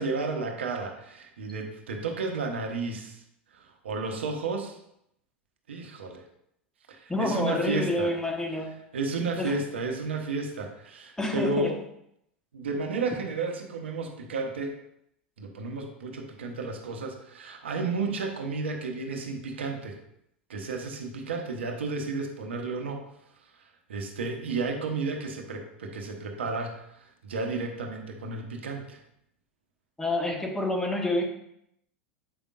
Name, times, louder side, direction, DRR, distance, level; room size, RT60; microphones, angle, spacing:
voice 1, 0.0-3.2 3.5-4.8 5.7-6.2 6.9-8.1 8.9-11.8 12.5-14.7 15.4-20.0 20.5-23.0 23.9-29.0, right 3 dB, 80° right, 3 dB, 0.9 m, -32 dB
voice 2, 7.1-8.8 9.4-9.6 11.2-11.7 30.0-31.2, left 2 dB, 10° left, 2 dB, 1.1 m, -28 dB
7.6 x 5.1 x 2.5 m, 0.77 s
hypercardioid pair, 85°, 6 cm